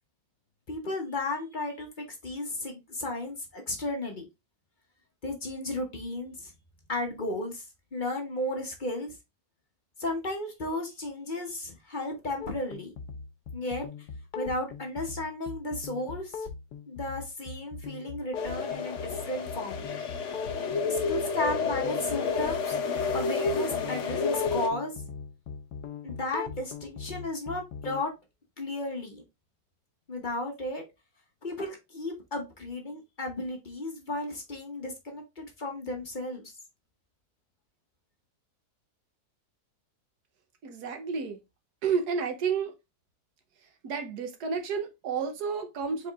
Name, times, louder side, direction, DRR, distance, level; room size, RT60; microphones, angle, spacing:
voice 1, 0.7-4.3 5.2-6.5 6.9-9.1 10.0-12.9 13.5-13.9 14.3-16.5 16.9-20.5 20.9-22.8 23.1-24.9 26.0-28.1 28.6-29.2 30.1-30.8 31.4-36.4, left 2 dB, 35° left, 1.1 m, -34 dB
sound 1, 12.4-28.0, left 5 dB, 80° left, 1.2 m, -40 dB
sound 2, 18.3-24.7, left 4 dB, 55° left, 0.9 m, -30 dB
voice 2, 40.6-41.4 41.8-42.7 43.8-46.1, right 6 dB, 80° right, 1.4 m, -31 dB
4.9 x 4.3 x 2.4 m
omnidirectional pair, 1.7 m